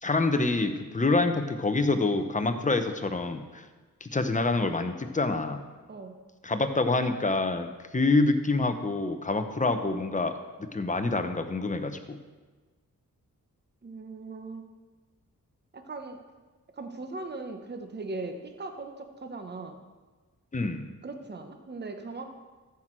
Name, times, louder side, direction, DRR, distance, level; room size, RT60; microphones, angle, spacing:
voice 1, 0.0-3.6 4.0-5.6 6.4-10.3 10.6-12.2 20.5-20.9, left 3 dB, 20° left, 8 dB, 0.8 m, -26 dB
voice 2, 13.8-14.6 15.7-16.2 16.8-19.8 21.0-22.3, right 3 dB, 30° right, 6 dB, 0.9 m, -39 dB
14.0 x 6.2 x 4.5 m, 1.3 s
wide cardioid pair, 95°, 34 cm